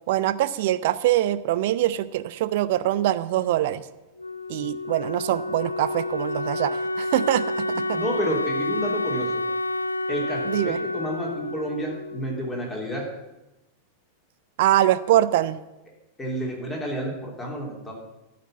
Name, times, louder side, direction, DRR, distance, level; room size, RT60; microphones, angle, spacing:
voice 1, 0.1-3.8 4.5-8.0 10.5-10.8 14.6-15.6, right 13 dB, 50° right, 15 dB, 0.5 m, -23 dB
Wind instrument woodwind instrument, 4.2-12.9, left 1 dB, 85° left, 0.3 m, -29 dB
voice 2, 7.9-9.4 10.1-13.1 16.2-17.9, equal, 15° left, -2 dB, 3.3 m, -30 dB
11.5 x 5.9 x 7.3 m, 1.0 s
figure-of-eight pair, 90°, 0 cm